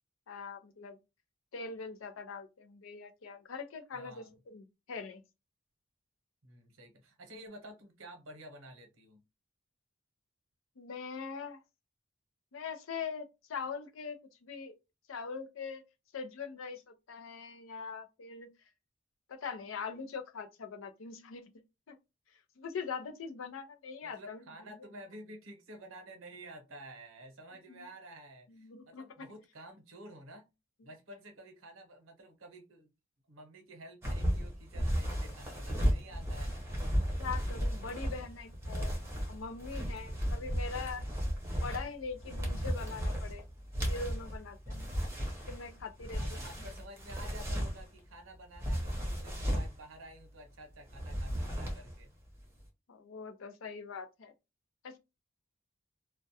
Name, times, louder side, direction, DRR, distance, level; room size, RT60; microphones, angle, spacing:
voice 1, 0.3-1.0 1.5-5.2 10.8-11.6 12.5-14.7 15.1-15.8 16.1-18.5 19.3-21.5 21.9-22.0 22.6-24.4 27.7-27.9 28.5-29.3 30.8-30.9 37.2-38.9 39.3-41.1 41.6-43.4 43.8-44.9 45.5-46.2 52.9-54.3 54.8-55.0, left 5 dB, 75° left, 0.5 m, -42 dB
voice 2, 3.9-4.4 6.4-9.2 24.0-30.4 30.8-32.9 33.3-36.6 46.1-52.1, right 1 dB, 80° right, 0.8 m, -51 dB
sound 1, 34.0-48.0 48.5-49.8 50.9-52.0 52.3-52.6, equal, 15° right, 0.8 m, -34 dB
2.3 x 2.1 x 2.6 m
head